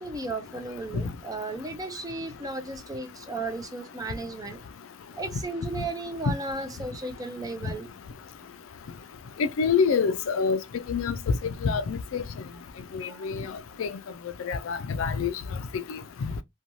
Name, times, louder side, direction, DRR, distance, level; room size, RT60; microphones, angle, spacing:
voice 1, 0.0-4.6 5.1-7.9 13.0-13.4, right 2 dB, 15° right, 0.4 m, -35 dB
voice 2, 9.4-10.6 10.9-11.1 11.6-12.2 12.9-13.5 13.8-13.9 14.4-15.3 15.7-16.0, left 5 dB, 70° left, 0.4 m, -26 dB
2.7 x 2.2 x 2.9 m
head